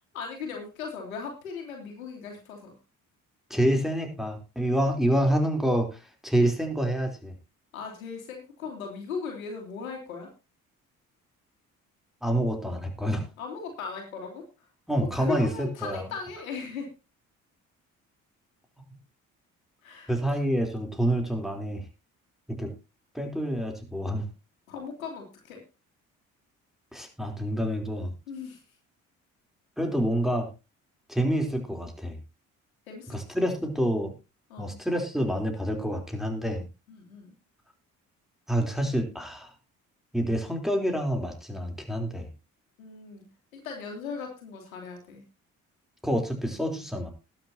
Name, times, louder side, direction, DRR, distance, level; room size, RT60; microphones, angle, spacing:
voice 1, 0.1-2.7 7.7-10.3 13.4-14.4 15.1-16.9 19.8-20.4 24.7-25.6 28.3-28.6 32.9-33.2 34.5-34.8 36.9-37.4 42.8-43.2 43.5-45.2, left 5 dB, 80° left, 1 dB, 2.8 m, -38 dB
voice 2, 3.5-7.3 12.2-13.3 14.9-16.1 20.1-21.8 22.5-22.7 23.1-24.3 26.9-28.1 29.8-30.5 31.1-32.2 33.1-34.1 34.6-36.7 38.5-39.5 40.1-42.3 46.0-47.1, right 1 dB, ahead, 2 dB, 3.7 m, -27 dB
20.0 x 7.6 x 2.9 m, 0.29 s
figure-of-eight pair, 45°, 41 cm